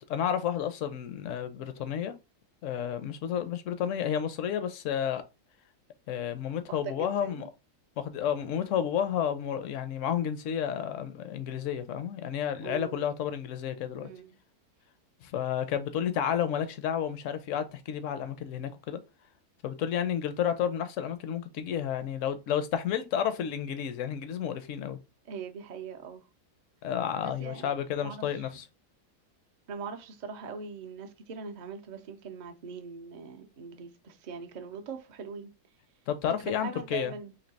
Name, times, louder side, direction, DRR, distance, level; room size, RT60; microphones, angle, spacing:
voice 1, 0.1-2.1 2.6-5.2 6.1-7.5 8.0-14.1 15.2-19.0 19.6-25.0 26.8-28.6 36.1-37.1, left 9 dB, 70° left, 0.8 m, -31 dB
voice 2, 6.7-7.5 12.6-13.0 14.0-14.4 25.3-26.2 27.2-28.5 29.7-35.5 36.4-37.3, right 6 dB, 65° right, 0.4 m, -41 dB
3.2 x 2.7 x 3.9 m
omnidirectional pair, 1.6 m